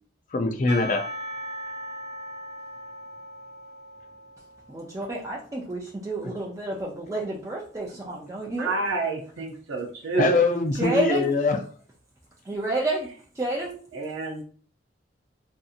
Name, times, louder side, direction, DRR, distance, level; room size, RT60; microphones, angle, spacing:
voice 1, 0.3-1.0 10.2-11.6, left 3 dB, 45° left, 5 dB, 0.4 m, -22 dB
Percussion / Church bell, 0.7-5.1, equal, 35° right, 0.9 m, -38 dB
voice 2, 4.7-8.7 10.7-11.3 12.5-13.1 13.4-13.8, right 1 dB, 15° right, -3 dB, 0.4 m, -29 dB
voice 3, 8.6-10.3 13.9-14.3, right 3 dB, 90° right, 2 dB, 0.6 m, -28 dB
2.7 x 2.6 x 2.4 m, 0.43 s
head